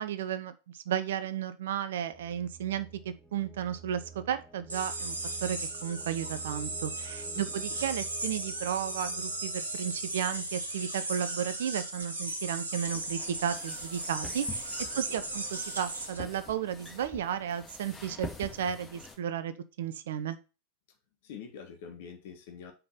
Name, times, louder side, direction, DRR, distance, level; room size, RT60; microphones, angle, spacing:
voice 1, 0.0-20.4, right 9 dB, 60° right, 0.7 m, -34 dB
sound 1, 2.1-11.9, right 5 dB, ahead, 1.7 m, -51 dB
sound 2, 4.7-16.2, right 2 dB, 75° right, 1.4 m, -36 dB
sound 3, 12.9-19.2, left 4 dB, 20° left, 1.9 m, -46 dB
voice 2, 14.9-15.2 21.2-22.7, left 7 dB, 50° left, 1.6 m, -45 dB
5.8 x 5.3 x 5.6 m
figure-of-eight pair, 90°, 0 cm